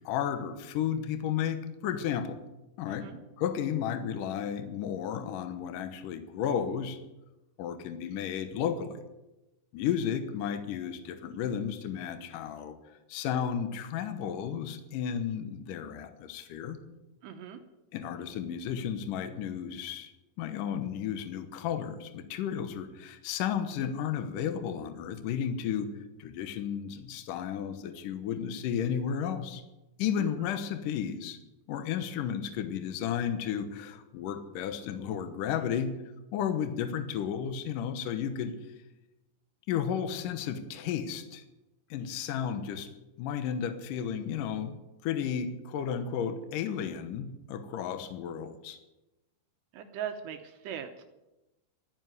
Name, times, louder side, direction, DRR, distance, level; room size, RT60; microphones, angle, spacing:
voice 1, 0.0-2.4 2.8-3.1 3.4-7.0 7.6-9.0 9.7-12.8 13.1-16.8 17.9-20.1 20.4-25.9 26.2-29.6 30.0-31.4 31.7-35.9 36.3-38.6 39.7-41.4 41.9-42.9 43.2-44.8 45.0-48.8, left 8 dB, 85° left, 9 dB, 1.9 m, -33 dB
voice 2, 17.2-17.6 30.2-30.3 49.7-51.0, right 9 dB, 75° right, 6 dB, 2.8 m, -39 dB
13.5 x 9.8 x 9.5 m, 1.0 s
omnidirectional pair, 5.5 m